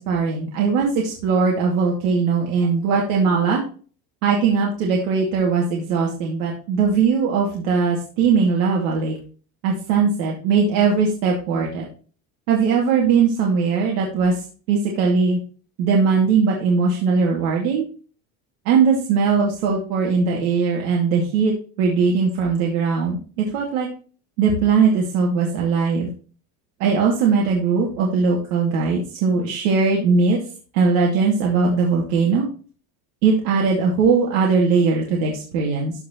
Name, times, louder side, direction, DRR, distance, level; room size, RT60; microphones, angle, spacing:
voice 1, 0.0-3.6 4.2-9.2 9.6-11.8 12.5-14.3 14.7-15.4 15.8-17.8 18.7-23.9 24.4-26.1 26.8-30.4 30.7-32.5 33.2-35.9, right 5 dB, 80° right, -1 dB, 2.5 m, -20 dB
13.5 x 4.8 x 3.1 m, 0.39 s
cardioid pair, 180°, 39 cm